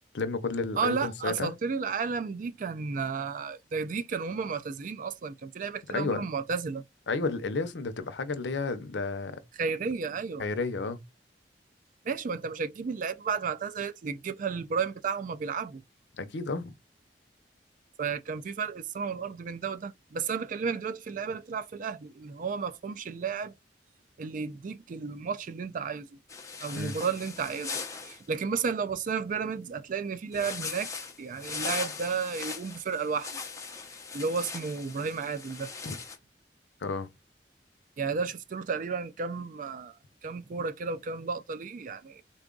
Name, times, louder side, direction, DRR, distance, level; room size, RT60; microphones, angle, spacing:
voice 1, 0.1-1.5 5.9-6.2 7.1-9.4 10.4-11.0 16.1-16.7 26.7-27.0 35.8-35.9 36.8-37.1, left 3 dB, 85° left, 0.6 m, -32 dB
voice 2, 0.8-6.8 9.6-10.5 12.0-15.8 18.0-23.5 24.2-26.2 26.6-30.9 31.2-33.4 34.1-35.7 38.0-40.0 40.2-42.2, right 5 dB, 50° right, 0.4 m, -33 dB
sound 1, 26.3-28.2 30.3-36.2, left 5 dB, 20° left, 0.8 m, -39 dB
3.6 x 2.3 x 3.8 m
head